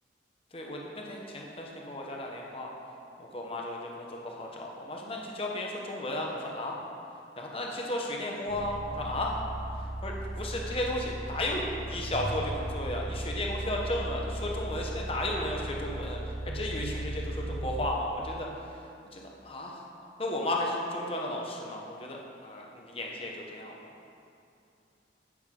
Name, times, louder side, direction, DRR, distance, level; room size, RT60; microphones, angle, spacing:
voice 1, 0.5-2.7 3.2-6.8 7.4-9.4 9.7-19.9 20.2-23.8, left 1 dB, 30° left, -1 dB, 1.0 m, -34 dB
sound 1, 8.5-17.9, right 1 dB, 60° left, 1.9 m, -37 dB
9.6 x 8.0 x 3.8 m, 2.6 s
head